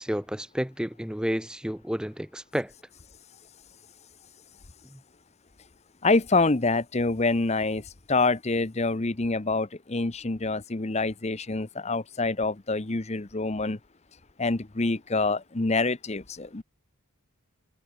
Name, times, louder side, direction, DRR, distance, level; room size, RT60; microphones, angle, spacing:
voice 1, 0.0-2.7 4.9-5.0, equal, 5° right, 0.7 m, -31 dB
voice 2, 6.0-13.8 14.4-16.6, left 3 dB, 30° left, 0.8 m, -26 dB
head